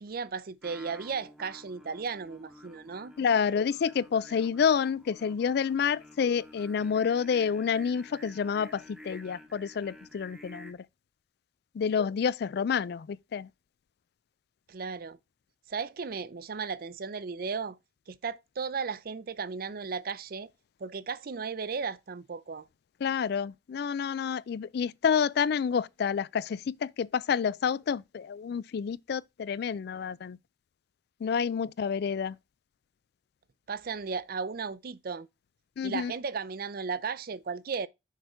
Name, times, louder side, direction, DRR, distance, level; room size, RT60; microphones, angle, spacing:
voice 1, 0.0-3.1 14.7-15.2 15.7-17.8 18.1-20.5 20.8-22.7 33.7-35.3 35.8-37.9, right 5 dB, 55° right, 0.5 m, -35 dB
Singing, 0.6-10.7, left 1 dB, 5° right, 1.0 m, -51 dB
voice 2, 3.2-10.8 11.7-13.5 23.0-30.4 31.2-32.4 35.8-36.1, left 7 dB, 60° left, 0.3 m, -29 dB
6.5 x 5.1 x 4.3 m
head